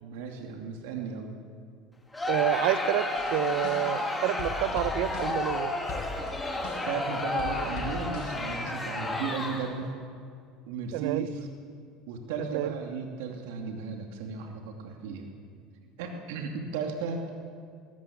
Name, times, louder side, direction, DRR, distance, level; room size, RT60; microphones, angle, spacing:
voice 1, 0.0-1.4 6.9-9.9 10.7-11.5 12.0-15.3 16.0-17.2, right 5 dB, 85° right, 3 dB, 2.6 m, -35 dB
Crowd, 2.1-9.9, left 2 dB, 10° left, 2.6 m, -32 dB
voice 2, 2.3-5.7 10.9-11.3 12.5-12.7, right 14 dB, 65° right, 14 dB, 1.0 m, -28 dB
sound 1, 3.2-4.1 4.4-5.6 5.9-7.0 7.4-8.5, left 4 dB, 60° left, 5.5 m, -40 dB
20.0 x 18.5 x 8.6 m, 2.3 s
cardioid pair, 150°, 0 cm